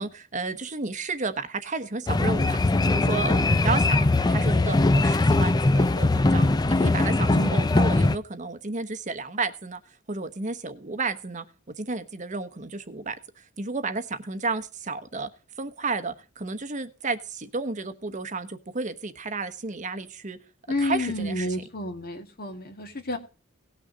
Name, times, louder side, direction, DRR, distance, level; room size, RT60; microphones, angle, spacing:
voice 1, 0.0-9.8 10.1-11.4 11.8-13.2 13.6-15.3 15.6-20.4 20.8-21.6, right 3 dB, 40° right, 1.0 m, -32 dB
sound 1, 2.1-8.2, left 2 dB, 20° left, 0.4 m, -21 dB
voice 2, 7.3-8.0 20.7-23.2, left 1 dB, 50° left, 2.1 m, -30 dB
18.0 x 6.5 x 3.9 m
head